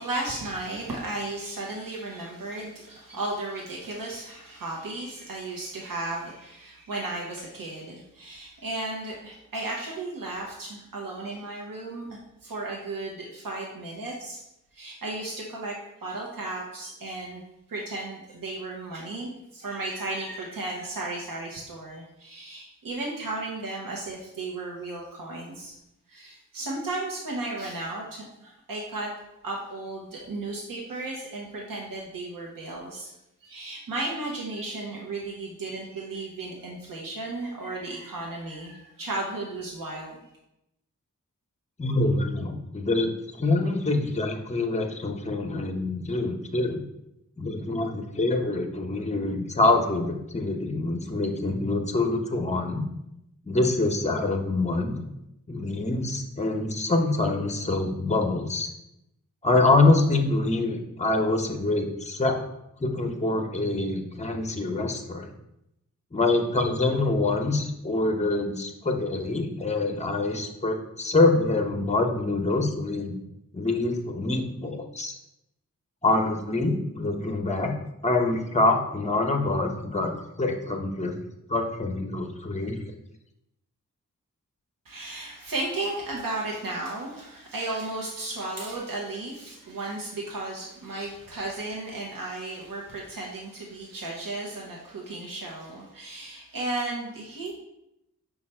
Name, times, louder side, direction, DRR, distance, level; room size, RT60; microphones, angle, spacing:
voice 1, 0.0-14.4 14.7-15.7 16.0-25.7 26.1-29.1 29.4-33.1 33.4-40.2 84.8-97.5, right 2 dB, 90° right, -3 dB, 0.8 m, -34 dB
voice 2, 41.8-46.8 47.4-52.8 53.4-55.0 55.5-58.7 59.4-62.4 62.8-65.3 66.1-73.2 73.5-75.1 76.0-77.7 78.0-80.1 80.4-81.1 81.5-82.7, left 2 dB, 20° left, 4 dB, 0.7 m, -25 dB
5.3 x 2.3 x 4.3 m, 0.86 s
cardioid pair, 45°, 33 cm